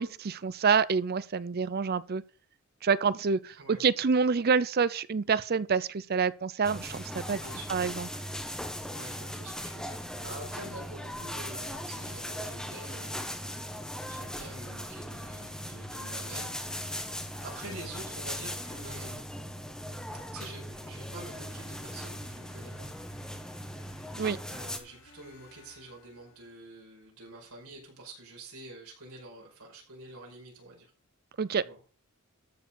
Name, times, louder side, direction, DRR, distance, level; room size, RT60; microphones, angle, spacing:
voice 1, 0.0-2.2 2.8-7.4 7.7-8.1 24.2-24.4 31.4-31.6, right 5 dB, 45° right, 0.5 m, -27 dB
sound 1, 6.6-24.8, equal, 5° left, 1.4 m, -39 dB
voice 2, 7.3-7.7 8.9-13.2 14.0-16.6 16.9-19.2 20.3-22.9 24.5-30.9 31.6-31.8, right 2 dB, 80° right, 5.3 m, -47 dB
sound 2, 20.7-26.9, left 2 dB, 60° left, 4.6 m, -59 dB
13.0 x 4.7 x 7.0 m
head